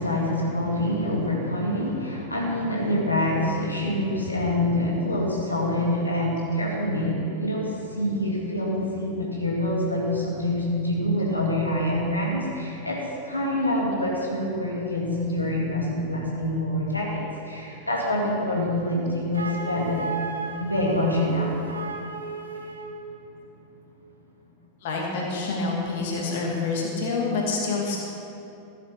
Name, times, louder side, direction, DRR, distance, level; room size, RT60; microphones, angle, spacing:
voice 1, 0.0-20.0 20.6-21.6 24.5-24.6, left 1 dB, 85° left, -4 dB, 2.3 m, -26 dB
Wind instrument woodwind instrument, 19.3-23.0, right 3 dB, 75° right, 1.3 m, -34 dB
voice 2, 24.8-28.0, left 3 dB, 55° left, -2 dB, 2.5 m, -27 dB
15.0 x 9.1 x 6.0 m, 2.8 s
figure-of-eight pair, 90°, 0 cm